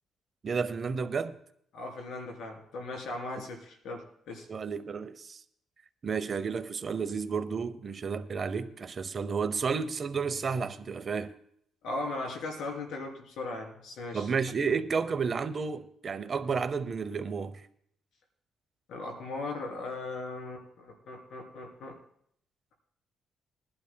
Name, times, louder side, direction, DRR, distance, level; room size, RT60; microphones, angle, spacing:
voice 1, 0.4-1.4 4.5-5.4 6.0-11.3 14.1-17.6, right 5 dB, 40° right, 0.7 m, -31 dB
voice 2, 1.7-4.4 11.8-14.3 18.9-21.9, left 2 dB, 80° left, 3.3 m, -38 dB
21.0 x 11.5 x 2.2 m
cardioid pair, 90°, 0 cm